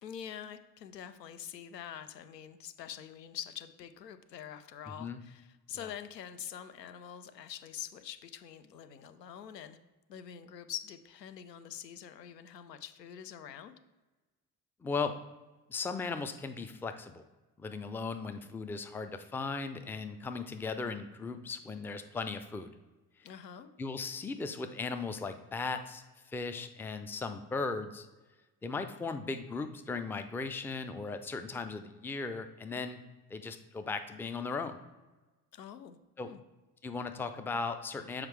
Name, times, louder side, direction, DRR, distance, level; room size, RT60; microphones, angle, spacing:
voice 1, 0.0-9.8 10.1-13.7 23.2-23.7 35.5-36.0 36.2-36.4, left 9 dB, 85° left, 10 dB, 0.6 m, -45 dB
voice 2, 4.9-5.2 5.8-5.9 14.8-15.1 15.7-17.2 17.6-22.7 23.8-26.0 26.3-28.1 28.6-33.0 33.3-34.8 36.2-36.3 36.8-38.3, left 4 dB, 5° left, 8 dB, 0.4 m, -37 dB
7.3 x 4.6 x 3.2 m, 1.2 s
figure-of-eight pair, 50°, 48 cm